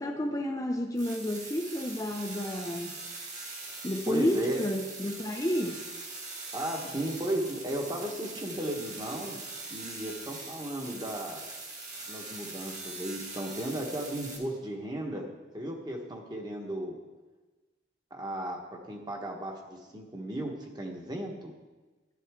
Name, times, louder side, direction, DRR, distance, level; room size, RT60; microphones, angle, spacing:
voice 1, 0.0-3.0 3.8-5.9, left 1 dB, 20° left, 2 dB, 0.5 m, -31 dB
sound 1, 1.0-14.4, right 3 dB, 40° right, 1.8 m, -42 dB
voice 2, 4.1-4.6 6.5-9.4 9.7-11.4 12.1-15.3 15.5-16.9 18.1-18.6 18.9-21.5, right 1 dB, 20° right, 1 dB, 1.2 m, -35 dB
12.0 x 10.5 x 3.6 m, 1.2 s
head